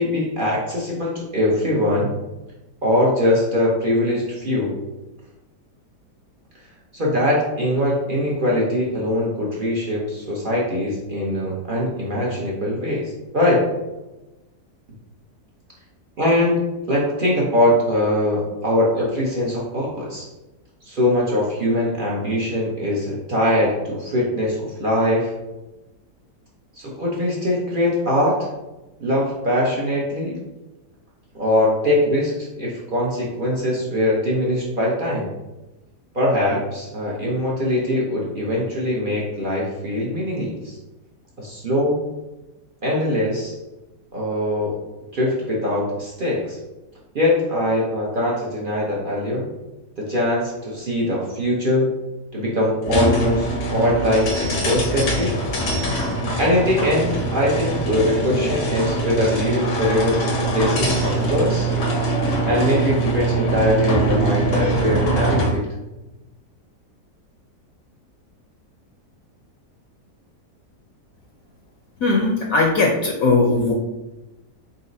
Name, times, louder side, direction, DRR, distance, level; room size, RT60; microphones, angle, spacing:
voice 1, 0.0-2.1 2.8-4.7 6.9-13.6 16.2-16.6 16.9-20.3 20.8-25.3 26.8-28.5 29.0-30.4 31.3-35.3 36.1-40.8 41.4-42.0 42.8-43.6 44.1-44.8 45.1-46.6 47.1-49.5 50.0-51.9 52.3-55.4 56.4-61.7 62.4-65.7, left 1 dB, 50° right, -4 dB, 0.6 m, -22 dB
sound 1, 52.8-65.6, right 2 dB, 90° left, 1.4 m, -23 dB
voice 2, 72.0-73.7, left 3 dB, 65° left, -1 dB, 0.9 m, -18 dB
4.0 x 4.0 x 2.6 m, 1.0 s
omnidirectional pair, 1.8 m